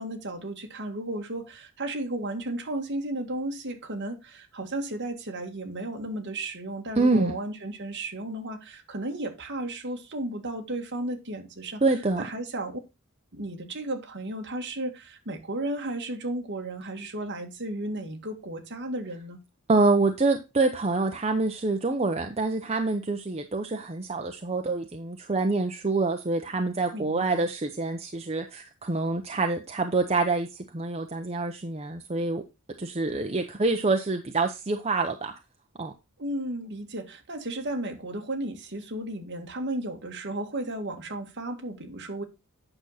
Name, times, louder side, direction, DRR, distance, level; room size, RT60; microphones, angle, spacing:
voice 1, 0.0-11.8 12.2-12.8 13.3-19.4 26.9-27.4 36.2-42.2, right 1 dB, 50° right, 1.8 m, -34 dB
voice 2, 7.0-7.3 11.8-12.2 19.7-32.4 32.8-35.3 35.8-35.9, right 3 dB, 30° right, 0.7 m, -26 dB
8.9 x 6.3 x 4.0 m
head